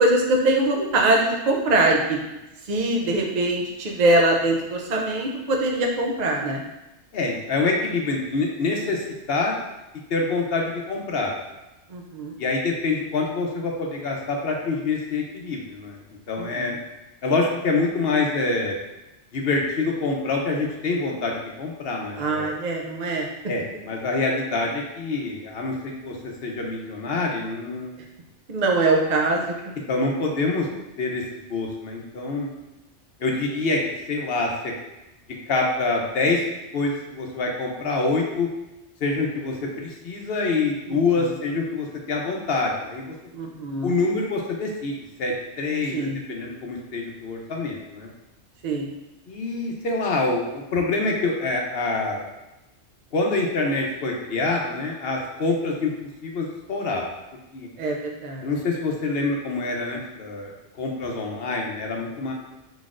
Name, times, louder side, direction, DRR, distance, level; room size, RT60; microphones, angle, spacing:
voice 1, 0.0-2.2 2.6-6.6 11.9-12.3 16.4-16.8 22.2-23.3 28.5-29.5 40.9-41.3 43.3-43.9 45.9-46.2 48.6-48.9 57.8-58.5, right 2 dB, 50° right, 0 dB, 0.5 m, -23 dB
voice 2, 7.1-9.6 10.1-11.3 12.4-16.0 16.3-16.7 17.2-18.7 19.3-21.3 21.6-22.5 23.5-26.2 26.4-27.9 29.9-30.7 31.0-31.2 31.5-32.5 33.2-33.8 34.1-34.7 35.5-36.4 36.7-38.5 39.0-43.1 43.8-44.9 45.2-48.1 49.3-52.3 53.1-57.0 57.5-57.7 58.4-60.5 60.8-62.3, left 3 dB, 60° left, 0 dB, 0.9 m, -26 dB
4.9 x 4.0 x 2.5 m, 0.98 s
omnidirectional pair, 1.2 m